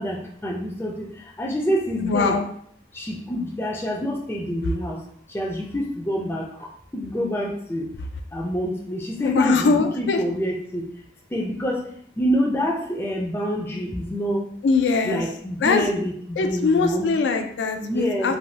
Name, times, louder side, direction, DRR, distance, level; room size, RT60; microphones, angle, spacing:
voice 1, 0.0-2.4 2.9-5.0 5.3-7.9 8.3-10.9 11.3-11.9 12.2-14.5 15.0-17.1 17.8-18.4, equal, 15° left, -1 dB, 0.4 m, -27 dB
voice 2, 2.0-2.5 9.2-10.2 14.6-15.2 15.6-15.9 16.4-18.3, left 4 dB, 90° left, 6 dB, 0.3 m, -22 dB
3.2 x 2.2 x 2.7 m, 0.65 s
head